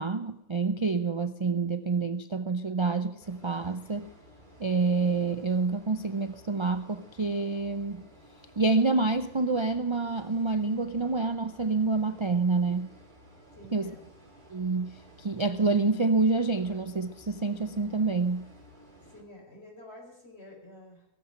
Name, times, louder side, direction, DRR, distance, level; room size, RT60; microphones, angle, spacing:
voice 1, 0.0-4.0 4.6-8.0 8.6-12.9 13.7-13.9 14.5-18.5, right 3 dB, 50° right, 10 dB, 0.3 m, -27 dB
sound 1, 3.2-19.2, equal, 30° right, 3.3 m, -54 dB
voice 2, 13.5-14.1 19.0-21.1, left 1 dB, 45° left, -1 dB, 5.3 m, -49 dB
18.0 x 8.0 x 10.0 m, 0.86 s
omnidirectional pair, 1.5 m